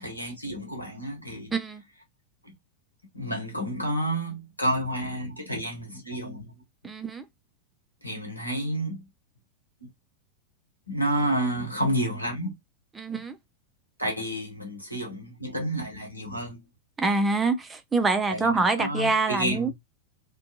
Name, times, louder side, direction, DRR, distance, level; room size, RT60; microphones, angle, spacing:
voice 1, 0.0-1.5 3.1-6.5 8.0-9.0 9.8-9.9 10.9-12.5 14.0-16.6 18.3-19.7, right 1 dB, 90° left, 1.1 m, -30 dB
voice 2, 1.5-1.8 6.8-7.2 13.0-13.4 17.0-19.7, right 3 dB, 15° right, 0.5 m, -25 dB
2.5 x 2.2 x 2.7 m
figure-of-eight pair, 90°, 0 cm